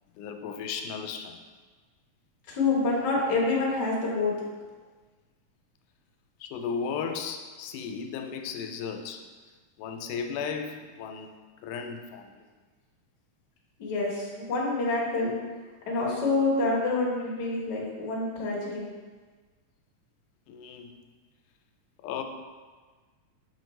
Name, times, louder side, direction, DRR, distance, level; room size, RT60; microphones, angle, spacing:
voice 1, 0.2-1.4 6.4-9.2 9.8-11.3 11.6-12.4 20.5-20.9 22.0-22.2, left 6 dB, 90° left, 5 dB, 2.1 m, -35 dB
voice 2, 2.5-4.3 13.8-15.4 15.9-18.8, left 3 dB, 50° left, -4 dB, 1.3 m, -27 dB
6.9 x 4.4 x 3.1 m, 1.4 s
omnidirectional pair, 3.6 m